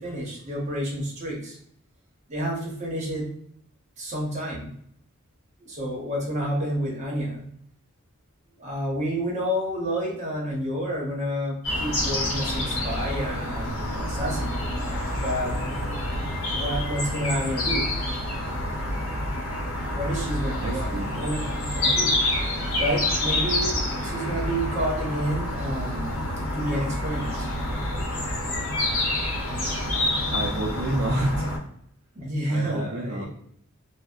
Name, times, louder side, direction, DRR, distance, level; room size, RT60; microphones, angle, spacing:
voice 1, 0.0-1.6 2.3-3.3 4.0-4.7 5.6-7.4 8.6-14.6 15.2-15.5 16.5-17.9 19.9-22.1 22.8-26.2 26.5-27.5 32.1-33.3, equal, 30° right, -3 dB, 0.8 m, -29 dB
sound 1, 11.6-31.6, left 1 dB, 70° left, 0.8 m, -28 dB
voice 2, 20.6-21.1 30.3-31.5 32.5-33.3, right 1 dB, 50° right, -4 dB, 0.4 m, -28 dB
2.6 x 2.0 x 2.3 m, 0.66 s
head